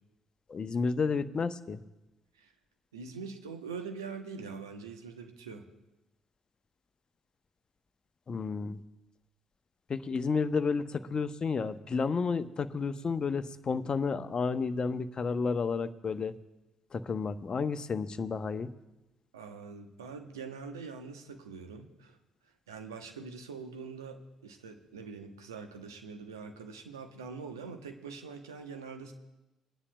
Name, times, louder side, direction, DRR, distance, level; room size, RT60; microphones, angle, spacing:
voice 1, 0.5-1.8 8.3-8.8 9.9-16.3 16.9-18.7, left 5 dB, 40° left, 11 dB, 0.7 m, -31 dB
voice 2, 2.9-5.7 19.3-22.2 22.7-29.1, right 5 dB, 85° right, 5 dB, 0.9 m, -43 dB
24.5 x 9.8 x 2.3 m, 1.0 s
figure-of-eight pair, 45°, 2 cm